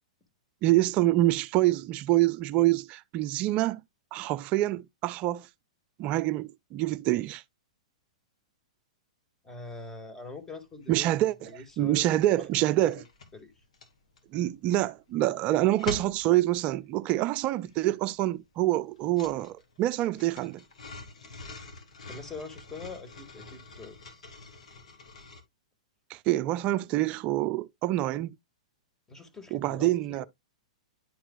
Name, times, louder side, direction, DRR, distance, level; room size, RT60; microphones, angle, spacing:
voice 1, 0.6-3.8 4.1-5.5 6.0-7.4 10.9-11.5 11.8-13.0 14.3-20.6 26.1-28.3 29.5-30.2, right 15 dB, 35° right, 0.4 m, -26 dB
voice 2, 9.4-11.1 11.4-13.0 13.3-13.5 22.1-24.2 29.1-30.3, left 3 dB, 15° left, 1.8 m, -44 dB
sound 1, 10.3-10.5 10.7-11.7 12.0-25.4, left 3 dB, 70° left, 2.0 m, -45 dB
10.5 x 4.4 x 2.3 m
figure-of-eight pair, 110°, 4 cm